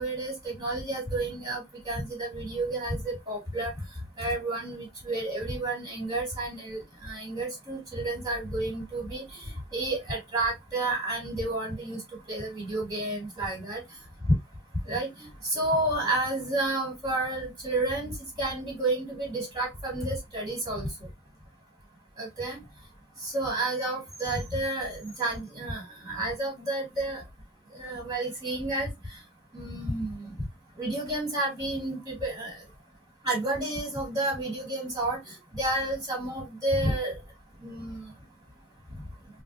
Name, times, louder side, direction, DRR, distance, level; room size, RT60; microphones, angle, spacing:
voice 1, 0.0-3.7 4.2-9.2 9.7-12.0 12.3-13.8 14.9-15.1 15.5-18.1 18.4-20.9 22.2-22.6 23.2-27.2 27.7-28.9 29.5-30.3 30.8-32.5 33.2-35.2 35.5-37.2 37.6-38.0, right 2 dB, 25° right, 2.3 m, -30 dB
4.1 x 2.5 x 2.6 m
head